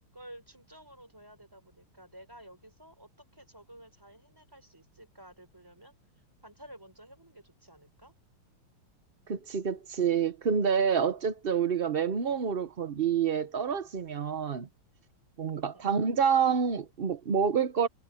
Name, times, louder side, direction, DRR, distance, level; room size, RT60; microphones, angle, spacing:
voice 1, 0.1-5.9 6.4-8.1 15.6-16.0, right 1 dB, 10° right, 3.9 m, -52 dB
voice 2, 9.3-14.7 15.4-17.9, right 7 dB, 75° right, 0.5 m, -28 dB
omnidirectional pair, 2.4 m